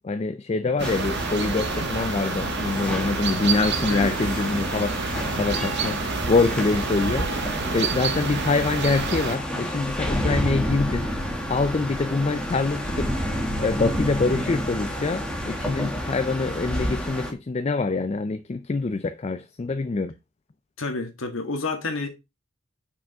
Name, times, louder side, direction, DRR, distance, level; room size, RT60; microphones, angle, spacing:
voice 1, 0.0-7.3 7.7-11.1 11.5-13.1 13.6-20.1, left 3 dB, 30° left, 0.4 m, -25 dB
sound 1, 0.8-17.3, equal, 5° left, 1.3 m, -30 dB
sound 2, 0.8-9.4, right 4 dB, 55° right, 0.8 m, -29 dB
voice 2, 20.8-22.1, left 3 dB, 65° left, 1.7 m, -29 dB
6.1 x 4.9 x 4.5 m
head